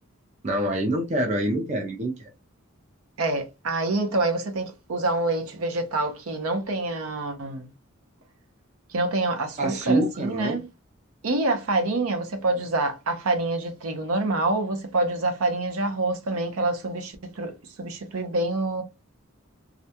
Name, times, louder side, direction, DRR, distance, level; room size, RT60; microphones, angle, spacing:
voice 1, 0.4-2.3 9.6-10.6, right 1 dB, 30° right, 0.5 m, -26 dB
voice 2, 3.2-7.7 8.9-10.6 11.2-17.5 17.8-18.8, right 2 dB, 80° right, 0.6 m, -26 dB
2.4 x 2.2 x 2.7 m
head